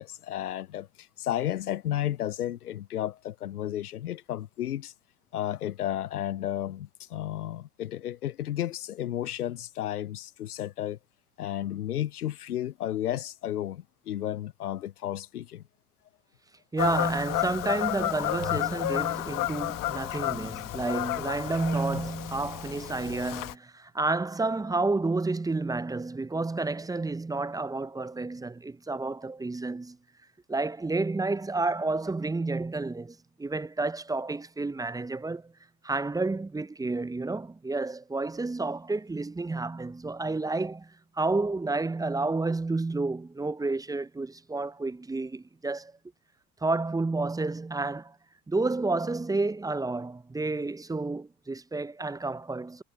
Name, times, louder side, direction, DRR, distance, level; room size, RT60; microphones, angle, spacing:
voice 1, 0.0-4.9 5.3-11.0 11.4-15.6, left 12 dB, 85° left, 0.7 m, -33 dB
voice 2, 16.7-30.0 30.5-35.5 35.8-45.9 46.6-48.2 48.5-52.8, right 3 dB, 10° right, 0.7 m, -30 dB
Fowl / Bird vocalization bird call bird song, 16.8-23.5, left 17 dB, 45° left, 1.5 m, -31 dB
figure-of-eight pair, 70°, 44 cm